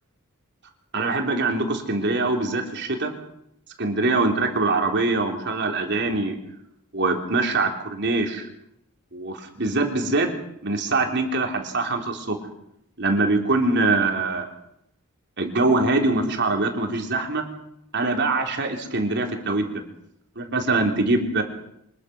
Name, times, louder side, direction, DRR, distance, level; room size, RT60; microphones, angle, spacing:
voice 1, 0.9-3.1 3.8-6.4 6.9-8.5 9.1-10.3 10.6-12.4 13.0-14.5 15.4-17.4 17.9-19.8 20.4-21.4, right 2 dB, 50° right, 3 dB, 3.8 m, -23 dB
25.0 x 21.5 x 6.3 m, 0.78 s
head